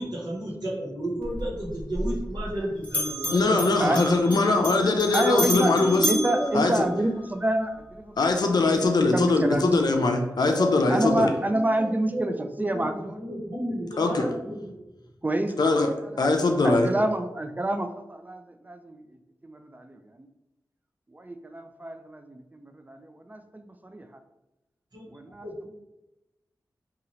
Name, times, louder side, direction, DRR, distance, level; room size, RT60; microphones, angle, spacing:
voice 1, 0.0-4.3 5.4-6.6 10.4-14.8 24.9-25.7, equal, 70° right, -4 dB, 1.2 m, -33 dB
Bell, 1.2-2.6 2.8-7.3, equal, 20° left, 1.1 m, -32 dB
voice 2, 3.3-6.1 6.5-6.9 8.2-11.3 14.0-14.3 15.6-16.9, left 3 dB, 65° left, 4 dB, 0.5 m, -22 dB
voice 3, 5.1-5.7 6.1-8.2 9.1-9.8 10.9-13.2 15.2-15.5 16.2-16.3 16.6-19.0 19.4-20.3 21.1-24.1 25.1-25.5, right 1 dB, 20° right, 7 dB, 0.4 m, -28 dB
2.7 x 2.4 x 3.0 m, 0.98 s
cardioid pair, 45°, 7 cm